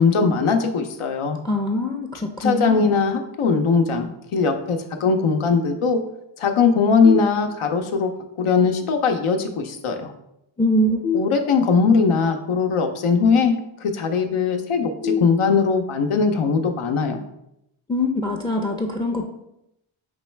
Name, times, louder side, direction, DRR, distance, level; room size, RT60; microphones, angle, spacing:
voice 1, 0.0-1.4 2.4-6.0 6.4-8.1 8.4-10.1 11.1-13.5 13.8-17.2, left 5 dB, 80° left, 6 dB, 0.7 m, -20 dB
voice 2, 1.4-2.9 10.6-11.0 17.9-19.3, left 1 dB, 10° left, 3 dB, 0.4 m, -23 dB
sound 1, 7.0-8.0 11.0-12.0 15.0-16.0, left 7 dB, 40° left, 0.8 m, -28 dB
5.2 x 3.1 x 3.3 m, 0.82 s
wide cardioid pair, 80°, 50 cm